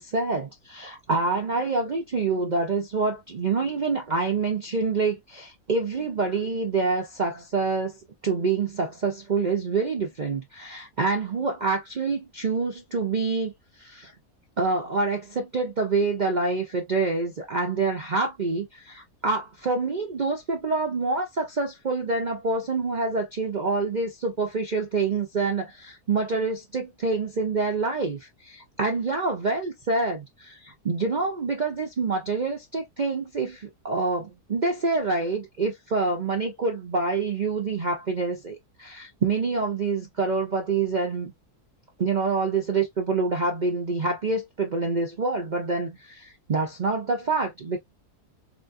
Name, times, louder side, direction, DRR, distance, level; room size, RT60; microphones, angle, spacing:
voice 1, 0.0-8.0 8.2-13.5 13.8-14.1 14.6-41.3 42.0-47.8, right 4 dB, 55° right, 0.5 m, -26 dB
4.1 x 2.3 x 2.5 m
omnidirectional pair, 1.7 m